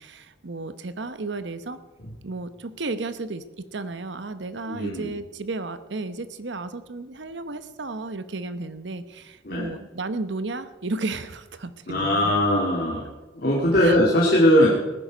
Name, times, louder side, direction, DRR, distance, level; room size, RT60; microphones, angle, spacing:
voice 1, 0.0-1.8 2.2-12.4 13.8-14.0, right 3 dB, 70° right, 12 dB, 0.9 m, -33 dB
voice 2, 4.7-5.1 9.4-9.7 11.9-13.1 13.3-14.7, equal, 50° left, -4 dB, 2.1 m, -20 dB
19.0 x 11.0 x 5.1 m, 1.2 s
head